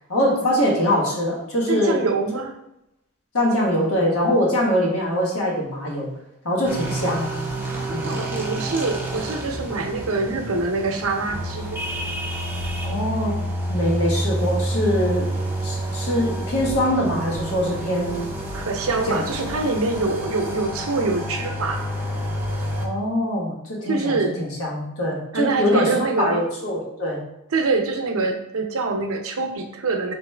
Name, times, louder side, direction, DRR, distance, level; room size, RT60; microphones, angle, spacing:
voice 1, 0.1-2.1 2.3-2.4 3.3-6.1 6.4-7.3 7.9-8.2 12.8-13.3 13.7-15.3 15.6-18.3 19.1-19.5 22.8-25.9 26.2-27.2, equal, 85° left, -3 dB, 1.4 m, -23 dB
voice 2, 1.7-2.5 7.7-11.8 18.5-21.8 23.8-24.4 25.3-26.4 27.5-30.1, right 3 dB, 80° right, 4 dB, 0.6 m, -25 dB
sound 1, 6.6-22.9, right 1 dB, 10° right, 0.5 m, -29 dB
4.0 x 3.0 x 3.3 m, 0.86 s
head